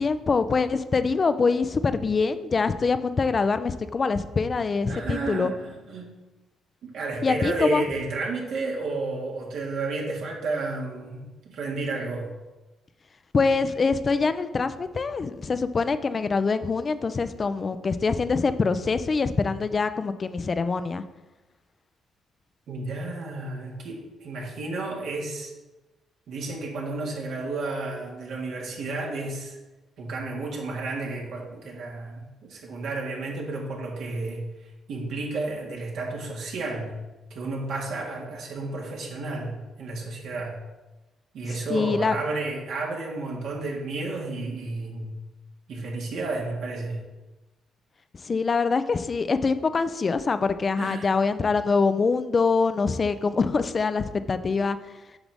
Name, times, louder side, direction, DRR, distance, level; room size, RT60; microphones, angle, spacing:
voice 1, 0.0-5.5 7.2-7.8 13.3-21.0 41.7-42.2 48.2-54.8, left 4 dB, 40° left, 12 dB, 0.5 m, -24 dB
voice 2, 4.9-6.1 6.8-12.3 22.7-25.5 26.3-29.6 30.0-37.0 37.3-40.6 41.3-45.2 45.7-47.1 50.8-51.1, right 3 dB, 75° right, -2 dB, 1.9 m, -32 dB
8.0 x 5.9 x 3.5 m, 1.1 s
supercardioid pair, 60°, 0 cm